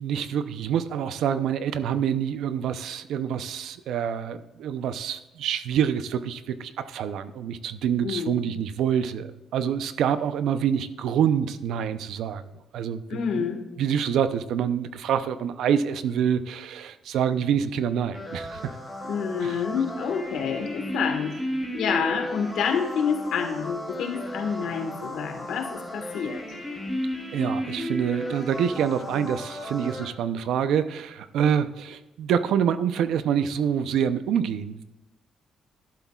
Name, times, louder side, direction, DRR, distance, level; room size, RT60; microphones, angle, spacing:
voice 1, 0.0-12.4 12.7-13.4 13.8-18.8 19.4-19.6 27.3-34.8, right 8 dB, 80° right, 12 dB, 0.6 m, -26 dB
voice 2, 8.0-8.4 13.1-13.6 19.1-21.4 21.7-26.4, left 6 dB, 80° left, 4 dB, 1.5 m, -28 dB
sound 1, 18.1-30.0, equal, 5° left, 2.9 m, -34 dB
11.5 x 11.5 x 2.4 m, 1.0 s
cardioid pair, 90°, 0 cm